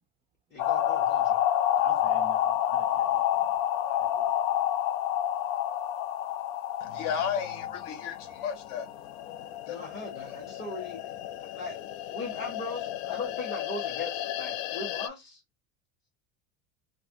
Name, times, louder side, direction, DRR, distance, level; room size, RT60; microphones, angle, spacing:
voice 1, 0.5-1.4 6.8-7.8 9.7-11.1 11.4-11.8 12.1-15.4, left 3 dB, 25° left, 1.0 m, -39 dB
sound 1, 0.6-15.1, left 11 dB, 75° left, 0.5 m, -30 dB
voice 2, 1.8-3.4 3.8-4.3, right 6 dB, 15° right, 0.4 m, -49 dB
voice 3, 6.8-8.9 9.7-9.8, left 8 dB, 50° left, 0.8 m, -33 dB
3.2 x 2.3 x 2.6 m
supercardioid pair, 130°, 40 cm